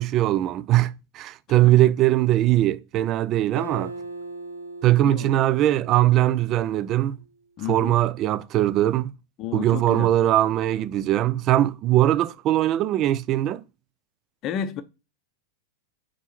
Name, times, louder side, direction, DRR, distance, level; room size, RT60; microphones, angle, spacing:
voice 1, 0.0-3.9 4.8-7.2 7.7-9.1 9.5-13.6, right 14 dB, 35° right, 0.4 m, -21 dB
Acoustic guitar, 3.6-7.1, right 2 dB, 75° right, 0.8 m, -39 dB
voice 2, 5.0-5.4 7.6-8.0 9.4-10.1 14.4-14.8, left 9 dB, 35° left, 0.6 m, -32 dB
5.0 x 3.7 x 5.7 m
figure-of-eight pair, 90°, 0 cm